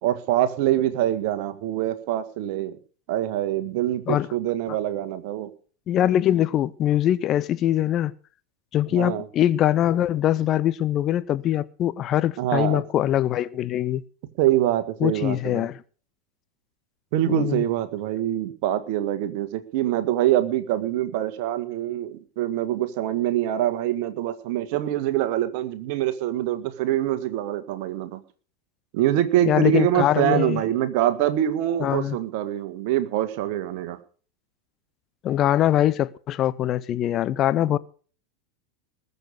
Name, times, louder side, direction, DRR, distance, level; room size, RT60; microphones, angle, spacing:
voice 1, 0.0-2.8 3.1-5.5 8.9-9.3 12.4-12.8 14.4-15.7 17.1-28.2 28.9-34.0 37.6-37.7, right 13 dB, 50° right, 1.7 m, -24 dB
voice 2, 5.9-8.1 8.7-14.0 15.0-15.8 17.3-17.6 29.4-30.6 31.8-32.2 35.2-37.8, left 12 dB, 35° left, 0.6 m, -22 dB
20.5 x 6.8 x 6.6 m
figure-of-eight pair, 85°, 0 cm